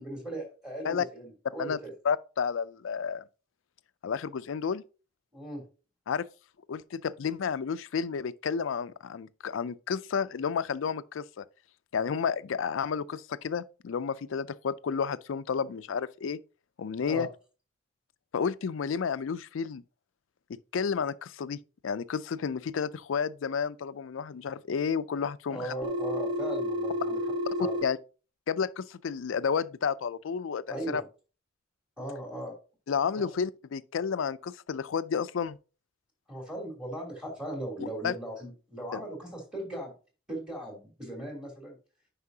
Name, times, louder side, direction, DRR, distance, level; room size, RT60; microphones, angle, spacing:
voice 1, 0.0-1.9 5.3-5.6 17.0-17.3 25.5-27.2 27.6-27.7 30.7-31.1 32.0-32.5 33.2-33.3 36.3-39.9 40.3-41.8, right 1 dB, 5° right, 3.1 m, -38 dB
voice 2, 2.0-3.2 4.0-4.8 6.1-6.3 6.7-11.4 11.9-16.4 16.8-17.3 18.3-19.8 20.7-21.6 21.8-25.7 27.8-28.0 28.5-31.0 32.9-35.6 38.0-38.1, left 6 dB, 90° left, 0.4 m, -31 dB
Telephone, 25.8-27.8, left 1 dB, 25° right, 1.2 m, -31 dB
9.6 x 5.5 x 2.8 m
head